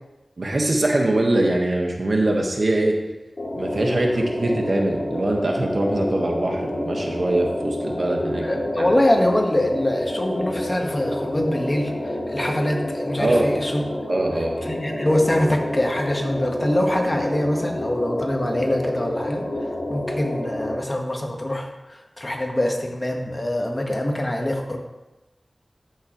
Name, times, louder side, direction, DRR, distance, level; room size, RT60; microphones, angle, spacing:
voice 1, 0.4-3.0 3.5-8.5 8.8-8.9 13.2-13.4 14.1-14.6, right 1 dB, 65° right, 1 dB, 1.4 m, -22 dB
sound 1, 3.4-20.7, left 1 dB, 55° left, 2.4 m, -29 dB
voice 2, 8.4-13.8 14.6-24.8, left 1 dB, 30° left, 2 dB, 1.4 m, -24 dB
14.0 x 6.4 x 3.1 m, 1.0 s
wide cardioid pair, 65°, 0 cm